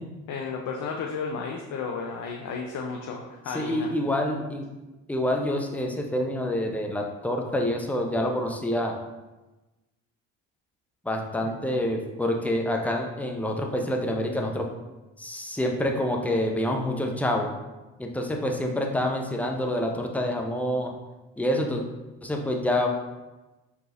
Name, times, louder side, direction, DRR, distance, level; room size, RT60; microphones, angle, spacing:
voice 1, 0.3-3.9 11.4-11.5, left 5 dB, 50° left, 1 dB, 0.6 m, -33 dB
voice 2, 3.5-4.7 5.1-9.0 11.0-14.7 15.2-17.5 18.0-20.9 21.4-21.8 22.2-22.9, left 1 dB, 5° left, 2 dB, 0.7 m, -27 dB
5.5 x 3.8 x 2.5 m, 1.1 s
hypercardioid pair, 60°, 40 cm